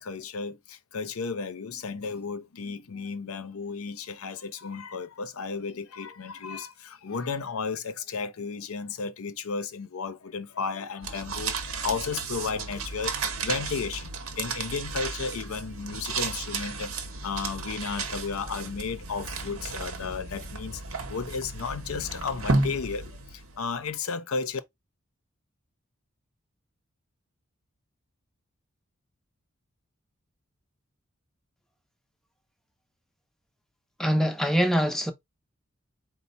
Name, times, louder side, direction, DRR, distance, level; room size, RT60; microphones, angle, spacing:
voice 1, 0.0-13.2 13.4-16.9 17.2-20.8 21.1-24.6, left 5 dB, 85° left, 0.6 m, -33 dB
sound 1, 11.0-23.6, right 3 dB, 80° right, 0.9 m, -33 dB
sound 2, 17.5-22.6, left 1 dB, 50° right, 0.8 m, -48 dB
voice 2, 34.0-35.1, equal, ahead, 0.5 m, -23 dB
4.3 x 2.1 x 3.9 m
head